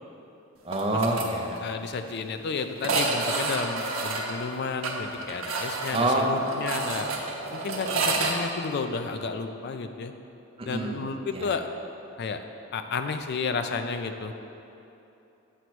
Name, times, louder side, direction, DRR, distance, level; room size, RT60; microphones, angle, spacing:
voice 1, 0.7-1.6 5.9-7.1 10.6-11.0 11.3-11.5, right 1 dB, 25° right, 0 dB, 0.7 m, -27 dB
sound 1, 0.7-1.3 1.6-1.7 1.9-2.0 2.8-8.3, right 3 dB, 75° right, 0.7 m, -29 dB
voice 2, 1.6-7.1 7.5-10.1 10.7-11.7 12.2-12.4 12.7-14.3, left 4 dB, 55° left, 7 dB, 0.4 m, -32 dB
8.1 x 3.0 x 6.1 m, 2.9 s
head